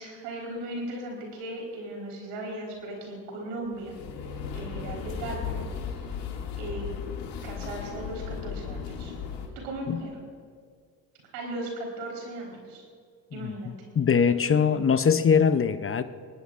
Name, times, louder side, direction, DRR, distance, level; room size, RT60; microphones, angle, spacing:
voice 1, 0.0-4.0 4.5-5.5 6.6-6.9 7.4-9.1 9.6-10.1 11.3-12.8 13.3-13.7, right 1 dB, 85° right, -1 dB, 4.4 m, -37 dB
sound 1, 3.7-9.5, left 6 dB, 75° left, 2.4 m, -36 dB
voice 2, 13.3-16.0, left 6 dB, 30° left, 12 dB, 0.7 m, -22 dB
23.5 x 20.0 x 2.5 m, 2.1 s
hypercardioid pair, 65°, 44 cm